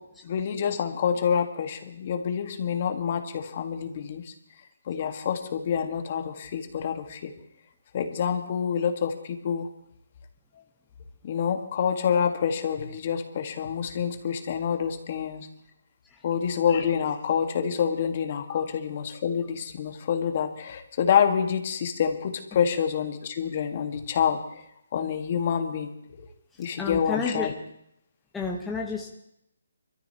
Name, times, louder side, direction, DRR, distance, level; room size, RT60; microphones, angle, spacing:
voice 1, 0.2-4.3 4.9-7.3 7.9-9.7 11.2-15.5 16.2-24.6 24.9-25.9 26.6-27.5, left 7 dB, 40° left, 6 dB, 1.5 m, -27 dB
voice 2, 26.8-27.5 28.3-29.1, left 4 dB, 5° left, -1 dB, 1.0 m, -30 dB
24.5 x 13.5 x 2.9 m, 0.78 s
figure-of-eight pair, 150°, 0 cm